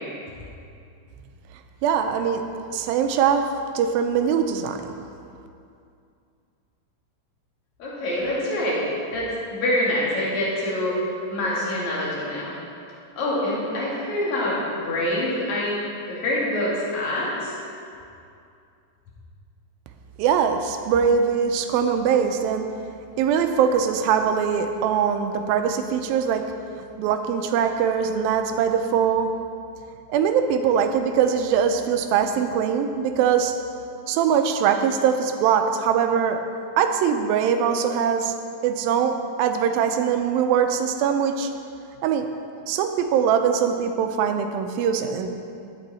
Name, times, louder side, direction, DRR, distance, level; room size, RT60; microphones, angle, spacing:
voice 1, 1.8-2.4 2.7-3.4 3.8-5.0 20.2-22.7 23.2-26.4 26.8-29.3 30.1-33.5 34.1-36.4 36.8-38.3 38.6-41.5 42.0-42.3 42.7-45.3, right 7 dB, 90° right, 6 dB, 2.4 m, -22 dB
voice 2, 7.8-8.9 9.1-11.0 11.3-12.5 13.2-15.8 16.1-17.5, left 1 dB, 55° left, -6 dB, 3.4 m, -25 dB
11.5 x 9.1 x 4.2 m, 2.5 s
omnidirectional pair, 4.1 m